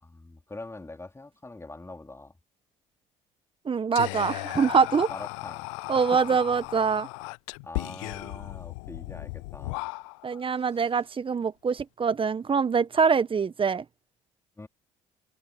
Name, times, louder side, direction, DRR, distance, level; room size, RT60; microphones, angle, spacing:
voice 1, 0.0-2.3 5.1-5.7 5.9-6.4 7.6-9.9 10.5-11.1 14.6-14.7, left 2 dB, 15° left, 4.2 m, -44 dB
voice 2, 3.6-5.1 5.9-7.1 10.2-13.8, right 5 dB, 35° right, 1.6 m, -24 dB
Whispering, 3.9-10.4, left 28 dB, 75° left, 0.5 m, -36 dB
hypercardioid pair, 60°, 16 cm